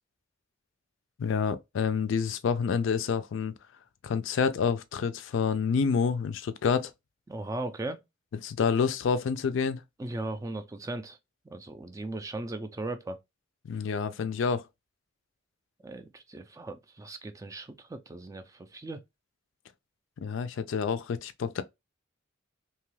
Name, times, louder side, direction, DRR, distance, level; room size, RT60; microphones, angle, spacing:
voice 1, 1.2-3.5 4.0-6.9 8.4-9.8 13.6-14.7 20.2-21.6, left 6 dB, 75° left, 0.3 m, -28 dB
voice 2, 7.3-8.0 10.0-11.2 11.5-13.2 15.8-19.0, right 2 dB, 15° right, 0.3 m, -37 dB
2.8 x 2.3 x 3.1 m
head